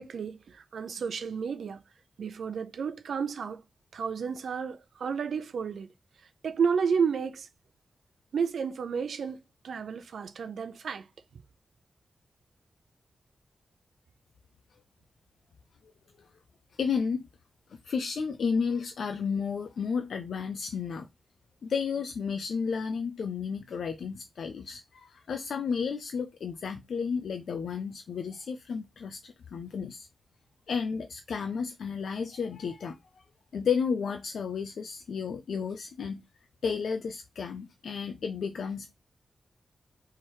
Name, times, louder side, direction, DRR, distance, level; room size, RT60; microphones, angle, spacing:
voice 1, 0.0-1.8 2.2-3.6 3.9-5.9 6.4-7.5 8.3-9.4 9.6-11.1 11.3-11.4, right 6 dB, 85° right, 0.6 m, -31 dB
voice 2, 16.8-17.3 17.7-21.1 21.6-30.1 30.7-33.0 33.5-36.2 36.6-38.9, left 6 dB, 80° left, 0.5 m, -32 dB
3.5 x 3.1 x 4.5 m
wide cardioid pair, 110°, 0 cm